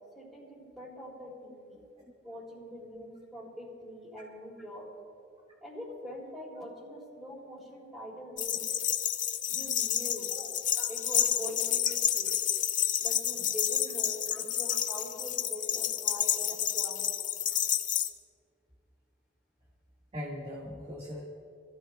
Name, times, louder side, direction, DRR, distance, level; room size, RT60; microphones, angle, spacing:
voice 1, 0.1-1.8 2.2-4.9 5.6-8.7 9.5-10.3 10.7-12.4 13.0-17.1, equal, ahead, -10 dB, 3.7 m, -43 dB
sound 1, 8.4-18.1, left 10 dB, 45° left, 0.7 m, -30 dB
voice 2, 10.4-10.9 20.1-21.2, left 1 dB, 35° right, -4 dB, 1.7 m, -41 dB
29.0 x 15.0 x 2.3 m, 2.4 s
head